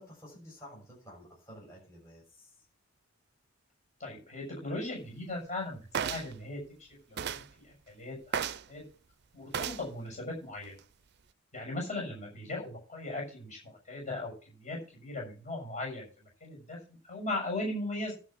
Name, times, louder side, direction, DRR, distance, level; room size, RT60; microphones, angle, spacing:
voice 1, 0.0-2.6, equal, 15° left, -5 dB, 6.8 m, -51 dB
voice 2, 4.0-8.8 9.3-10.8 11.5-16.1 16.4-16.8 17.0-18.1, left 2 dB, 30° left, -1 dB, 7.0 m, -38 dB
sound 1, 5.9-6.3 7.2-7.5 8.3-8.7 9.5-9.9 10.6-10.8, right 7 dB, 50° right, 0.5 m, -33 dB
12.0 x 5.9 x 7.4 m, 0.36 s
head